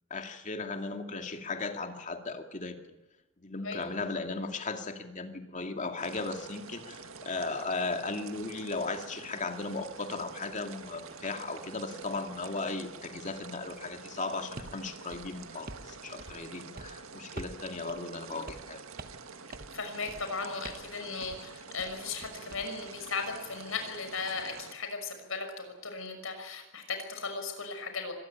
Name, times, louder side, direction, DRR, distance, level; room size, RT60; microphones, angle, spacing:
voice 1, 0.1-2.8 3.4-18.8, left 3 dB, 35° left, 5 dB, 2.4 m, -36 dB
sound 1, 6.0-24.7, right 5 dB, 80° right, 1.9 m, -47 dB
sound 2, 14.6-14.8 15.1-15.9 16.2-16.5 16.8-17.0 17.4-17.6 17.9-18.0 18.5-18.7 19.0-19.3 19.5-19.8 20.1-20.3 20.6-20.9 21.2-21.4 21.8-22.7, right 2 dB, 45° right, 1.3 m, -45 dB
voice 2, 19.7-28.1, left 4 dB, 70° left, 6 dB, 6.1 m, -37 dB
25.0 x 19.5 x 8.7 m, 1.1 s
head